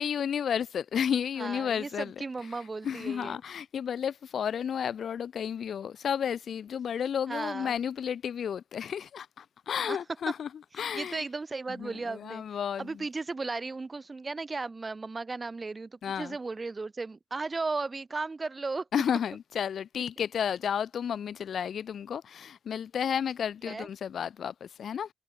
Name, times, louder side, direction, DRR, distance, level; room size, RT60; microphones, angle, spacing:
voice 1, 0.0-2.1 2.8-10.5 10.8-11.2 11.8-12.9 16.0-16.3 18.9-25.1, left 8 dB, 55° left, 0.9 m, -32 dB
voice 2, 1.4-3.4 7.3-7.8 9.8-10.0 10.9-12.4 12.8-18.9 23.7-23.9, right 3 dB, 25° right, 2.3 m, -35 dB
cardioid pair, 90°, 0 cm